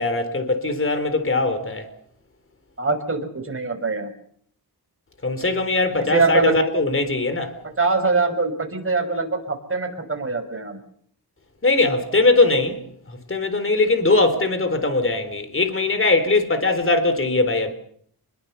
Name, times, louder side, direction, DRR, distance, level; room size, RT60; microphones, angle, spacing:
voice 1, 0.0-1.9 5.2-7.5 11.6-17.7, left 2 dB, 30° left, 4.0 m, -20 dB
voice 2, 2.8-4.1 5.9-6.5 7.8-10.8, right 3 dB, 30° right, 5.9 m, -23 dB
28.0 x 22.0 x 6.9 m
wide cardioid pair, 110°, 42 cm